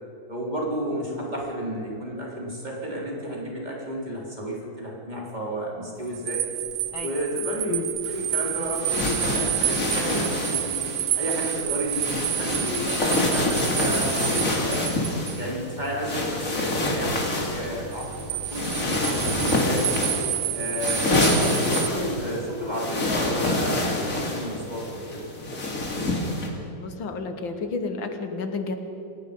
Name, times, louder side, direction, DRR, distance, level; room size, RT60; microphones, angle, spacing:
voice 1, 0.3-6.4 7.0-7.8 8.1-10.8 11.1-14.9 15.4-17.2 17.5-19.9 20.5-25.2, equal, 20° right, -4 dB, 4.2 m, -32 dB
sound 1, 6.1-15.4 17.9-21.9, right 13 dB, 70° right, 0.9 m, -29 dB
sound 2, 8.0-26.5, left 2 dB, 45° left, 3.0 m, -27 dB
voice 2, 26.8-28.8, left 4 dB, 75° left, 7 dB, 2.1 m, -31 dB
27.5 x 18.5 x 5.4 m, 2.9 s
omnidirectional pair, 2.1 m